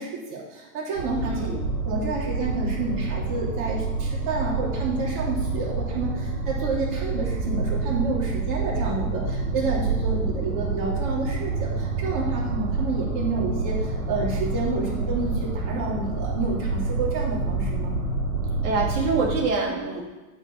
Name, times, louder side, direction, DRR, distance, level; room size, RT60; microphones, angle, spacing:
voice 1, 0.0-1.5 1.8-17.9, right 3 dB, 45° right, -3 dB, 3.0 m, -29 dB
sound 1, 0.9-19.4, right 3 dB, 85° right, 2.8 m, -28 dB
voice 2, 1.2-1.6 14.8-15.2 18.6-20.0, right 4 dB, 60° right, -2 dB, 2.1 m, -26 dB
8.6 x 5.5 x 5.5 m, 1.2 s
supercardioid pair, 140°, 41 cm